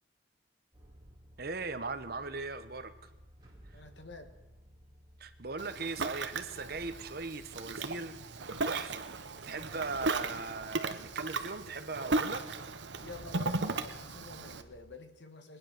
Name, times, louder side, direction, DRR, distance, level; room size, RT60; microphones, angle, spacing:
sound 1, 0.7-14.9, equal, 25° right, 2.5 m, -57 dB
voice 1, 1.4-3.1 3.6-3.8 5.2-9.1 9.4-12.6, right 3 dB, 55° right, 11 dB, 1.1 m, -39 dB
voice 2, 3.7-4.3 13.0-15.6, left 3 dB, 75° left, 7 dB, 1.8 m, -49 dB
Ocean, 5.6-14.6, right 3 dB, 80° right, 1.1 m, -36 dB
22.0 x 9.9 x 6.6 m, 1.0 s
head